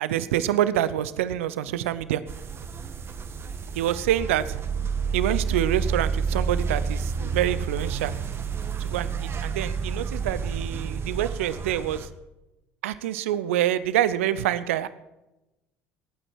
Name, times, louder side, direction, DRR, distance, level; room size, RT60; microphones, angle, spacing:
voice 1, 0.0-2.2 3.7-4.6 5.1-8.1 8.8-12.1 12.8-14.9, right 12 dB, 75° right, 16 dB, 0.7 m, -26 dB
sound 1, 2.3-12.1, right 5 dB, 35° right, 1.3 m, -30 dB
19.0 x 9.0 x 4.6 m, 0.98 s
hypercardioid pair, 60°, 7 cm